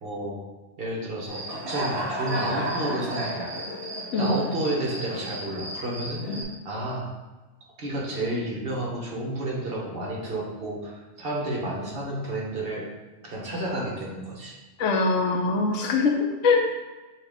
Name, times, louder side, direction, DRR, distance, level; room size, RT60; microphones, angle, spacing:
voice 1, 0.0-0.4 0.8-3.5 4.2-6.2 6.6-7.1 7.8-12.9 13.2-14.5, right 1 dB, 50° right, -3 dB, 1.1 m, -31 dB
Human voice / Cricket, 1.3-6.4, right 1 dB, 30° right, 0.5 m, -33 dB
voice 2, 14.8-16.7, left 4 dB, 80° left, 2 dB, 1.0 m, -23 dB
5.9 x 2.4 x 3.4 m, 1.2 s
omnidirectional pair, 1.3 m